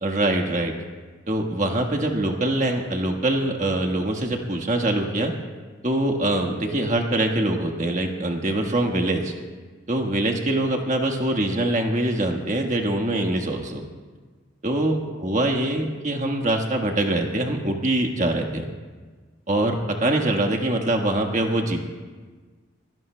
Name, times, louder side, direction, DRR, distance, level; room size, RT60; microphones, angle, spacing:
voice 1, 0.0-0.7 1.3-5.3 5.8-9.3 9.9-13.8 14.6-18.6 19.5-21.9, right 1 dB, 35° right, 3 dB, 1.4 m, -23 dB
23.5 x 17.5 x 2.2 m, 1.4 s
head